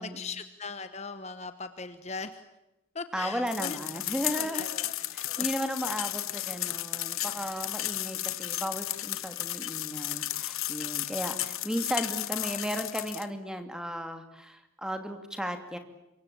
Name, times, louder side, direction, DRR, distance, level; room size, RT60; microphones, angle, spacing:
voice 1, 0.0-2.5 2.9-3.8 4.4-5.5 12.3-12.6, left 4 dB, 30° left, 10 dB, 1.1 m, -40 dB
voice 2, 3.1-4.6 5.1-15.8, equal, 5° right, 7 dB, 2.5 m, -35 dB
sound 1, 3.5-13.3, left 15 dB, 80° left, 1.3 m, -34 dB
27.0 x 24.0 x 8.5 m, 0.96 s
head